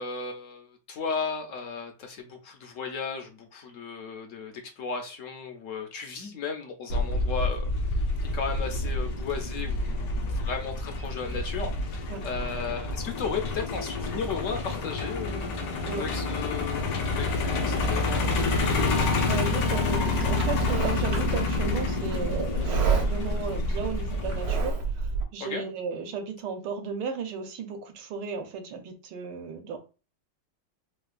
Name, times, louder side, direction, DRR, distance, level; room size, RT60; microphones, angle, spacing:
voice 1, 0.0-8.0 8.3-15.5 16.0-18.2 25.4-25.6, left 5 dB, 65° left, 0.8 m, -35 dB
Truck, 6.9-24.7, left 2 dB, 90° left, 1.4 m, -28 dB
voice 2, 16.8-17.2 19.3-25.1 25.3-29.8, right 5 dB, 80° right, 1.3 m, -35 dB
Livestock farm animals working animals, 20.2-25.2, right 4 dB, 65° right, 1.4 m, -30 dB
4.4 x 2.2 x 2.4 m
omnidirectional pair, 1.9 m